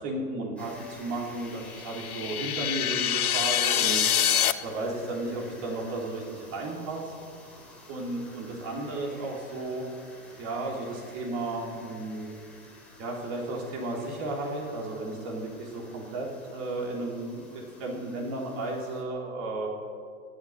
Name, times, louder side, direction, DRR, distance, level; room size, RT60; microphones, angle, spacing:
voice 1, 0.0-4.1 4.6-7.1 7.9-9.8 10.4-12.3 13.0-19.7, right 2 dB, 35° right, -1 dB, 3.8 m, -34 dB
sound 1, 0.6-19.0, left 2 dB, 5° left, 3.4 m, -51 dB
sound 2, 1.7-4.5, left 9 dB, 85° left, 1.0 m, -25 dB
19.5 x 8.0 x 8.0 m, 2.3 s
hypercardioid pair, 140°, 43 cm